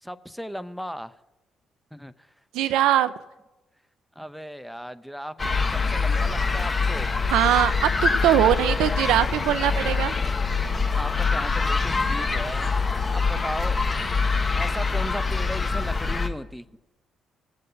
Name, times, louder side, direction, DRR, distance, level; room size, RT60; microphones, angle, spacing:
voice 1, 0.0-1.1 1.9-2.1 4.2-5.3 5.7-7.1 8.5-8.9 9.8-9.9 10.9-12.7 13.1-13.8 14.5-16.7, equal, ahead, 13 dB, 0.7 m, -36 dB
voice 2, 2.5-3.1 7.3-10.1, right 12 dB, 75° right, 12 dB, 0.5 m, -21 dB
sound 1, 5.4-16.3, left 4 dB, 35° left, 1.3 m, -24 dB
18.5 x 7.6 x 3.9 m, 1.0 s
hypercardioid pair, 50°, 0 cm